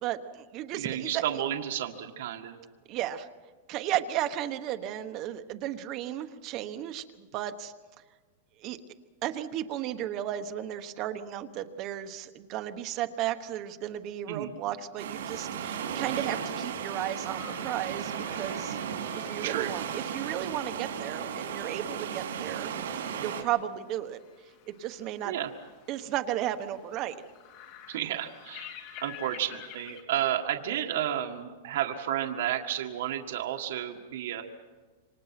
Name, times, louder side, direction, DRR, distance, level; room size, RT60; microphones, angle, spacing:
voice 1, 0.0-1.2 2.9-3.3 3.7-7.7 8.6-8.8 9.2-18.8 19.1-22.7 23.2-24.2 24.7-25.3 25.9-27.2, right 12 dB, 30° right, 8 dB, 1.2 m, -34 dB
voice 2, 0.7-2.6 14.3-14.5 19.4-19.7 25.3-25.5 27.9-28.7 29.0-34.4, right 11 dB, 60° right, 2 dB, 1.8 m, -32 dB
sound 1, 15.0-23.4, right 7 dB, 85° right, 4.5 m, -35 dB
sound 2, 17.1-30.0, left 9 dB, 35° left, 3.0 m, -51 dB
27.5 x 25.0 x 6.0 m, 1.3 s
supercardioid pair, 170°, 0 cm